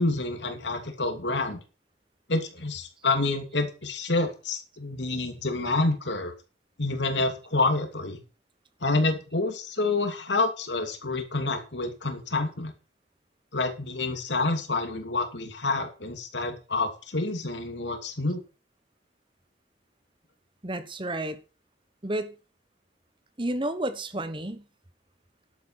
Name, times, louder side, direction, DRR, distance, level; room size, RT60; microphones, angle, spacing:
voice 1, 0.0-1.6 2.3-6.3 6.8-8.2 8.8-12.7 13.5-18.4, left 3 dB, 85° left, 2.8 m, -28 dB
voice 2, 20.6-21.4 22.0-22.3 23.4-24.6, right 1 dB, 30° right, 1.2 m, -31 dB
11.5 x 8.5 x 5.8 m
head